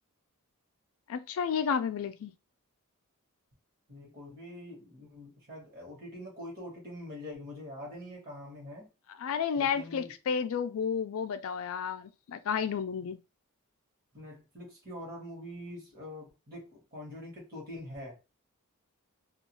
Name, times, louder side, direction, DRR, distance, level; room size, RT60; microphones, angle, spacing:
voice 1, 1.1-2.3 9.1-13.2, left 7 dB, 70° left, 0.4 m, -32 dB
voice 2, 3.9-8.9 9.5-10.1 14.1-18.2, left 1 dB, 45° right, 1.1 m, -44 dB
2.4 x 2.3 x 2.9 m
head